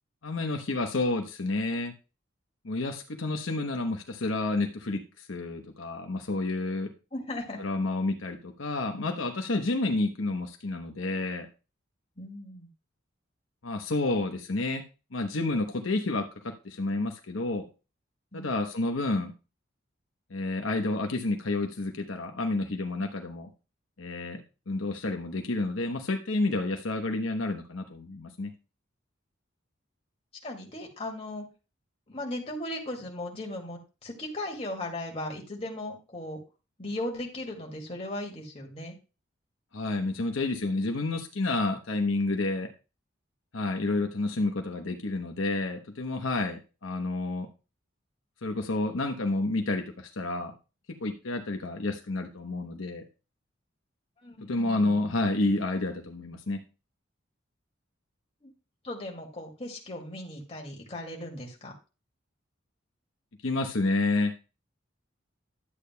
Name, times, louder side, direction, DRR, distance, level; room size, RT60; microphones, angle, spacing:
voice 1, 0.2-1.9 2.6-6.9 7.6-11.5 13.6-14.8 15.1-17.6 18.3-19.3 20.3-23.5 24.0-24.4 24.7-28.5 39.7-42.7 43.5-47.5 48.4-50.5 51.0-53.0 54.5-56.6 63.4-64.3, left 2 dB, 75° left, 4 dB, 0.9 m, -30 dB
voice 2, 7.1-7.6 12.2-12.7 18.3-18.5 30.4-31.4 32.1-36.4 36.8-38.9 54.2-55.2 58.4-58.5 58.8-61.7, left 1 dB, 30° left, 0 dB, 2.2 m, -37 dB
11.5 x 8.5 x 2.2 m, 0.31 s
head